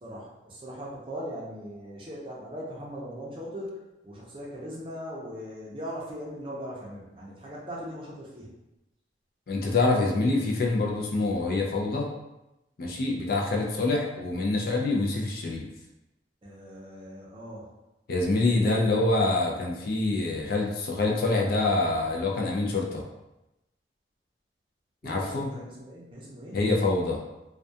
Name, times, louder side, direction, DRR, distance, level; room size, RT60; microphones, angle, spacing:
voice 1, 0.0-3.8 4.0-8.5 16.4-17.7 18.4-18.8 25.0-26.6, equal, 30° right, -5 dB, 0.5 m, -39 dB
voice 2, 9.5-12.1 12.8-15.7 18.1-23.0 25.0-25.5 26.5-27.2, left 2 dB, 55° left, -1 dB, 0.4 m, -26 dB
2.2 x 2.2 x 2.6 m, 0.95 s
head